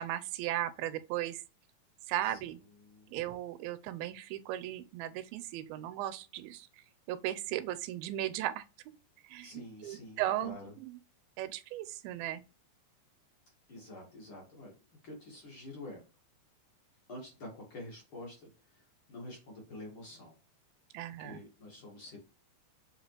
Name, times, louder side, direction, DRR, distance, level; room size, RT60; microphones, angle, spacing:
voice 1, 0.0-1.4 2.1-2.6 3.1-6.7 7.1-8.6 9.2-11.0 11.4-12.4 20.9-21.4, right 13 dB, 85° right, 2.5 m, -36 dB
voice 2, 2.2-3.2 9.4-10.7 13.7-14.7 15.0-16.0 17.1-20.3 21.2-22.2, left 1 dB, 45° left, 2.2 m, -48 dB
7.4 x 4.1 x 3.1 m
omnidirectional pair, 4.3 m